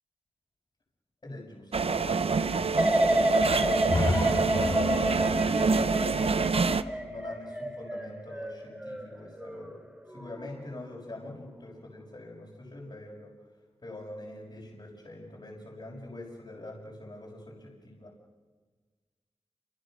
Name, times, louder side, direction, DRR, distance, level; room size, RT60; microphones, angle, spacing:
voice 1, 1.2-4.1 4.5-13.3 13.8-18.1, left 1 dB, 50° left, -4 dB, 6.1 m, -44 dB
sound 1, 1.7-6.8, right 4 dB, 65° right, 0.8 m, -27 dB
sound 2, 2.8-9.7 10.1-10.6, right 1 dB, 10° right, 3.4 m, -29 dB
sound 3, 3.9-7.7, left 2 dB, 30° left, 1.3 m, -33 dB
29.5 x 26.5 x 6.5 m, 1.4 s
wide cardioid pair, 95°, 11 cm